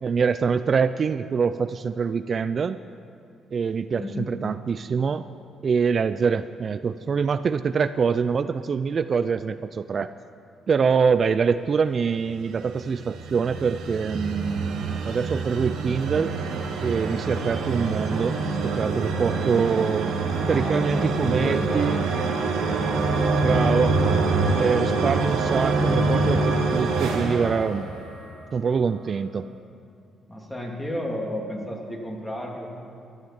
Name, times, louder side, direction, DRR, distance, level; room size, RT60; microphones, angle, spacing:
voice 1, 0.0-2.8 3.5-5.2 5.6-10.1 10.7-16.3 16.8-18.4 18.6-20.2 20.5-22.0 23.4-24.0 24.5-27.9 28.5-29.5, right 6 dB, 45° right, 12 dB, 0.4 m, -24 dB
voice 2, 4.0-4.3 20.4-22.1 30.3-32.7, left 1 dB, 10° left, 0 dB, 2.7 m, -32 dB
sound 1, 12.3-28.4, right 3 dB, 85° right, 1.7 m, -25 dB
13.0 x 9.4 x 8.8 m, 2.4 s
cardioid pair, 90°, 0 cm